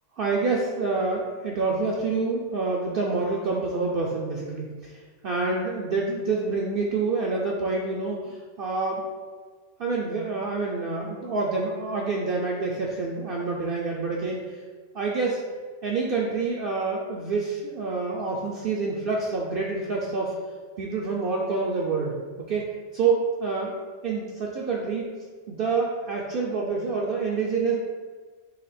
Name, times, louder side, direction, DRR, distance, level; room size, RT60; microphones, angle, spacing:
voice 1, 0.2-9.1 9.8-14.6 14.9-15.4 15.8-20.3 20.8-22.2 22.5-22.7 22.9-23.7 24.0-25.1 25.5-27.8, right 4 dB, 60° right, -2 dB, 0.6 m, -27 dB
4.2 x 2.9 x 4.1 m, 1.5 s
omnidirectional pair, 1.3 m